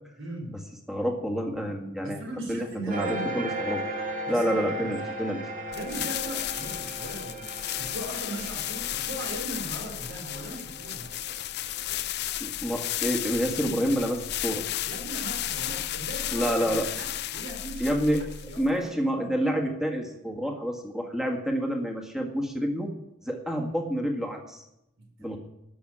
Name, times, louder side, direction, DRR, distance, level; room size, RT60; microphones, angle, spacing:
voice 1, 0.2-0.5 2.0-3.5 4.3-4.9 5.7-11.2 14.8-18.0 18.5-19.6 25.0-25.4, right 1 dB, 70° right, 2 dB, 4.5 m, -39 dB
voice 2, 0.9-2.2 2.5-3.8 4.3-5.4 12.4-14.6 16.3-16.9 17.8-18.3 18.6-22.9 23.3-24.6 25.2-25.4, equal, ahead, 1 dB, 1.7 m, -28 dB
sound 1, 2.9-11.9, right 1 dB, 40° right, 1.7 m, -37 dB
sound 2, 5.7-18.9, left 12 dB, 55° left, 0.5 m, -33 dB
14.0 x 6.2 x 9.9 m, 0.84 s
head